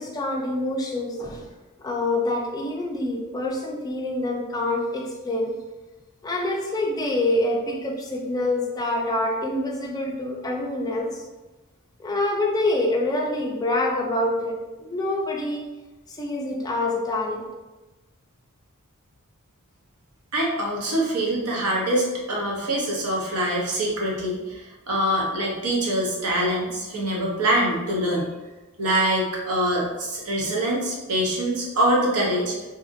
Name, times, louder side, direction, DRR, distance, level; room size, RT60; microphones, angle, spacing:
voice 1, 0.0-1.5 1.8-5.5 6.2-11.3 12.0-15.6 16.1-17.4, left 1 dB, 15° left, 0 dB, 0.3 m, -26 dB
voice 2, 20.3-24.6 24.9-28.3 28.8-32.6, right 1 dB, 85° right, -3 dB, 0.8 m, -24 dB
2.8 x 2.5 x 2.5 m, 1.1 s
head